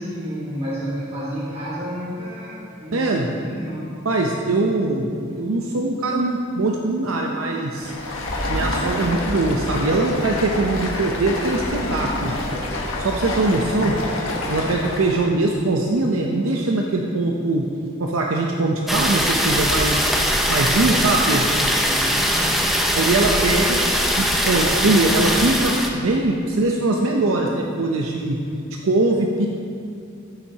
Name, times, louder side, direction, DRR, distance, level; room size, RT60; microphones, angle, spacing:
voice 1, 0.0-3.1 3.5-4.0 21.7-22.8, equal, 30° right, -7 dB, 1.4 m, -31 dB
voice 2, 2.9-3.3 4.0-7.9 8.5-12.3 13.0-14.0 14.5-17.6 18.0-20.1 20.5-21.5 22.9-23.8 24.2-28.4 28.8-29.5, right 2 dB, 80° right, 0 dB, 0.6 m, -21 dB
Stream, 7.7-15.3, left 1 dB, 85° left, 1.3 m, -27 dB
sound 1, 18.9-25.9, equal, ahead, 0.6 m, -21 dB
13.5 x 7.2 x 2.8 m, 2.4 s
head